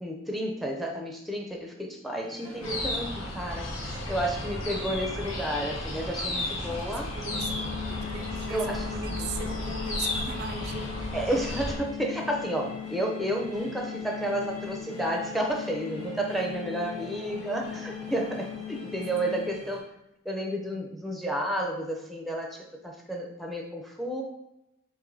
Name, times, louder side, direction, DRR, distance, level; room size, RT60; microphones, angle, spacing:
voice 1, 0.0-7.1 8.5-9.2 11.1-19.9 20.2-24.2, right 1 dB, ahead, 0 dB, 0.5 m, -31 dB
sound 1, 2.0-19.8, equal, 35° left, 1.0 m, -46 dB
sound 2, 2.6-11.8, left 1 dB, 90° left, 1.1 m, -34 dB
voice 2, 6.2-11.0 16.4-16.9 19.2-19.5, right 6 dB, 55° right, 6 dB, 0.4 m, -41 dB
sound 3, 7.3-19.7, left 11 dB, 70° left, 0.3 m, -39 dB
4.8 x 3.9 x 2.7 m, 0.87 s
head